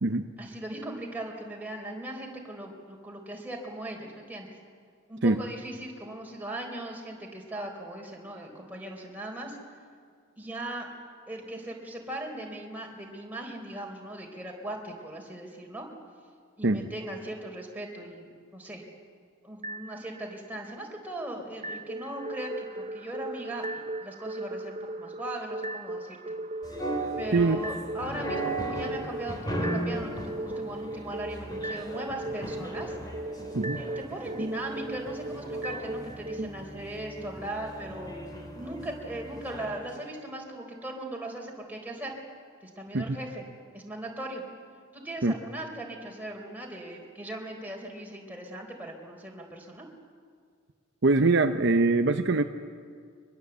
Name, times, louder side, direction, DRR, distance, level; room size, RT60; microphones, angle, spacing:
voice 1, 0.4-4.5 5.1-9.6 10.4-10.9 11.3-15.9 16.6-18.8 19.4-26.4 27.2-33.0 33.8-38.1 38.6-42.1 42.6-43.4 43.7-44.4 44.9-49.9, right 1 dB, 10° right, 0 dB, 3.8 m, -39 dB
sound 1, 19.6-20.6 21.6-36.5, right 2 dB, 30° right, 0.6 m, -37 dB
sound 2, 26.6-39.9, right 1 dB, 20° left, 3.3 m, -37 dB
voice 2, 51.0-52.4, right 3 dB, 55° right, 7 dB, 0.8 m, -23 dB
24.0 x 21.0 x 8.1 m, 2.1 s
head